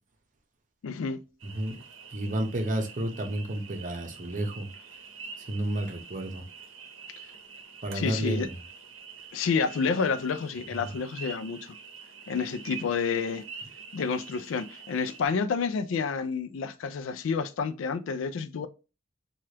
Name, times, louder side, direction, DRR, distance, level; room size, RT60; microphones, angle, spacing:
voice 1, 0.8-1.2 7.9-8.5 9.3-11.6 12.3-13.4 13.9-18.7, left 5 dB, 80° left, 0.4 m, -29 dB
voice 2, 1.4-1.8 2.1-4.7 5.5-6.4 7.8-8.5, right 1 dB, 40° right, 0.7 m, -31 dB
sound 1, 1.4-15.3, right 5 dB, 85° right, 0.7 m, -46 dB
3.3 x 2.3 x 2.8 m
head